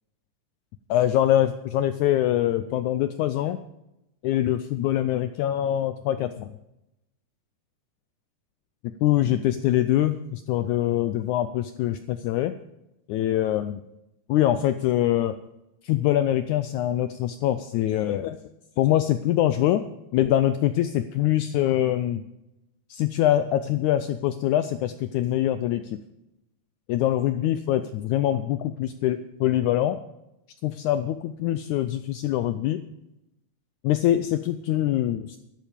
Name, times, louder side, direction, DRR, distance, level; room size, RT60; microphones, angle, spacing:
voice 1, 0.9-3.6 4.2-6.5 9.0-12.5 13.1-13.8 14.3-15.4 15.8-18.4 18.8-19.8 20.1-22.2 22.9-26.0 26.9-30.0 30.6-32.8 33.8-35.4, left 12 dB, 90° left, 10 dB, 1.7 m, -24 dB
12.5 x 11.5 x 5.2 m, 0.88 s
omnidirectional pair, 4.1 m